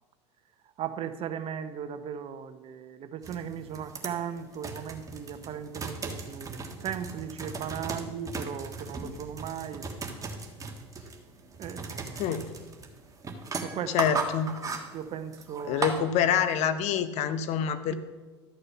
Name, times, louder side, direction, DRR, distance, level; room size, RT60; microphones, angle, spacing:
voice 1, 0.8-9.9 11.6-12.3 13.6-14.0 14.9-15.9, right 8 dB, 40° right, 11 dB, 0.8 m, -37 dB
sound 1, 3.2-16.0, right 4 dB, 25° right, 1.5 m, -37 dB
voice 2, 13.9-14.6 15.7-17.9, left 8 dB, 50° left, 11 dB, 0.9 m, -26 dB
12.5 x 6.7 x 5.7 m, 1.3 s
hypercardioid pair, 85°, 14 cm